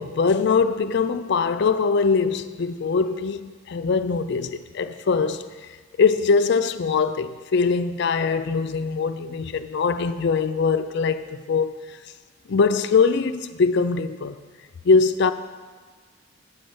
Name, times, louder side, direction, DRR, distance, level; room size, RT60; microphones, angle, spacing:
voice 1, 0.0-5.5 6.0-11.8 12.5-14.4 14.8-15.3, left 5 dB, 55° left, 0.4 m, -22 dB
8.2 x 5.4 x 7.8 m
head